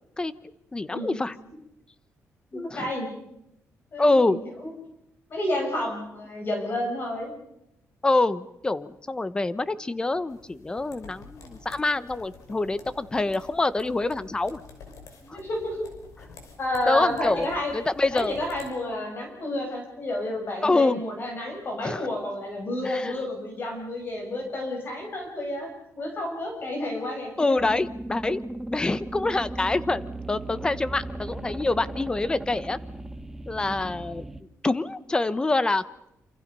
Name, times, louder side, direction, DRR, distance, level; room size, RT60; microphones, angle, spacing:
voice 1, 0.7-1.3 2.5-2.9 4.0-4.4 8.0-14.6 15.3-15.4 16.9-17.5 17.7-18.3 20.6-21.0 21.8-22.1 22.8-23.2 27.4-30.0 30.3-32.8 33.5-34.2 34.6-35.8, left 2 dB, 15° left, 15 dB, 1.0 m, -25 dB
voice 2, 2.5-3.1 3.9-4.7 5.3-7.3 15.2-15.8 16.6-17.7 18.1-25.7 25.9-27.6 33.5-33.9, left 1 dB, 40° left, 1 dB, 6.5 m, -31 dB
sound 1, 10.3-18.7, left 4 dB, 80° left, 5.6 m, -48 dB
sound 2, 27.6-34.4, right 2 dB, 5° right, 1.5 m, -37 dB
28.0 x 28.0 x 5.5 m, 0.84 s
wide cardioid pair, 155°, 5 cm